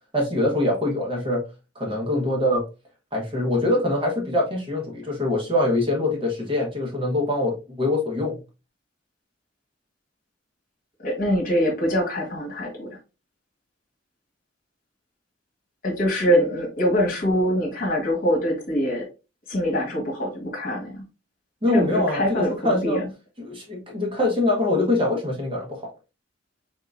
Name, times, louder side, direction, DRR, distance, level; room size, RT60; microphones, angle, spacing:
voice 1, 0.1-1.4 1.7-2.6 3.1-8.4 21.6-23.0 23.4-25.9, left 1 dB, 25° right, -1 dB, 1.2 m, -24 dB
voice 2, 11.0-12.9 15.8-19.0 19.5-21.0 21.7-23.1, equal, 45° left, 0 dB, 1.4 m, -24 dB
3.8 x 3.7 x 2.5 m, 0.28 s
head